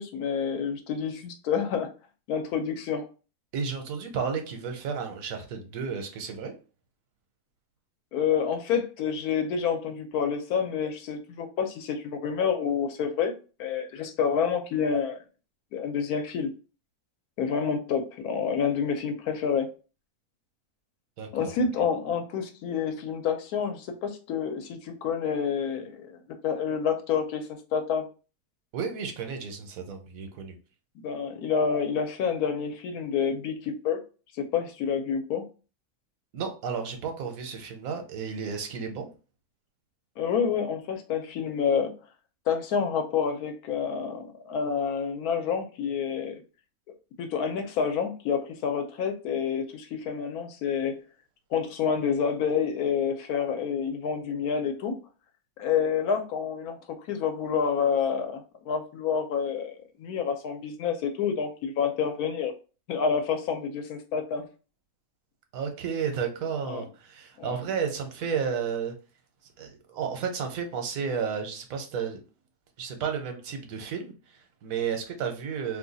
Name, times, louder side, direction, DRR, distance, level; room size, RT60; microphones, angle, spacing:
voice 1, 0.0-1.9 2.3-3.0 8.1-13.3 13.6-15.2 15.7-16.5 17.4-19.7 21.3-26.2 26.4-28.0 31.0-34.0 34.4-35.4 40.2-41.9 42.5-46.4 47.2-51.0 51.5-55.0 55.6-62.5 62.9-64.5 66.7-66.8 67.4-67.5, left 6 dB, 80° left, 6 dB, 1.2 m, -28 dB
voice 2, 3.5-6.5 21.2-21.5 28.7-30.6 36.3-39.1 65.5-68.9 69.6-72.2 72.8-75.8, right 6 dB, 70° right, 5 dB, 1.1 m, -32 dB
2.8 x 2.3 x 3.8 m, 0.34 s
omnidirectional pair, 1.6 m